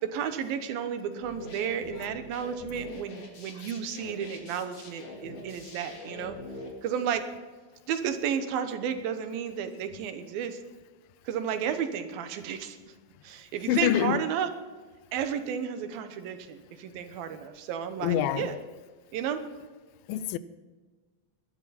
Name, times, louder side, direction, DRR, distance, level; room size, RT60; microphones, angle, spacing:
voice 1, 0.0-6.4 6.8-7.3 7.9-10.6 11.3-12.9 13.2-14.5 15.1-18.6 19.1-19.4, right 8 dB, 85° right, 2.9 m, -32 dB
sound 1, 1.2-6.7, left 2 dB, 45° left, 3.4 m, -44 dB
voice 2, 13.7-14.2 18.0-18.5 20.1-20.4, left 11 dB, 90° left, 2.4 m, -25 dB
20.0 x 12.0 x 4.2 m
omnidirectional pair, 4.1 m